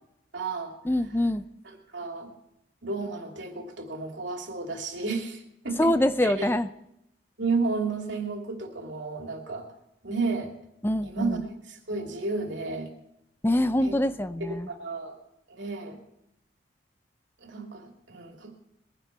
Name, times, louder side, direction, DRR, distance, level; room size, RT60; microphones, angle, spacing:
voice 1, 0.3-0.7 1.6-2.3 2.8-5.9 6.2-6.5 7.4-9.7 10.0-10.5 11.0-12.9 13.8-14.0 14.4-15.2 15.5-16.0 17.4-18.5, right 3 dB, 90° right, 2 dB, 2.8 m, -32 dB
voice 2, 0.9-1.4 5.8-6.7 10.8-11.4 13.4-14.7, left 1 dB, 10° left, 12 dB, 0.4 m, -24 dB
21.5 x 10.5 x 4.5 m, 0.81 s
head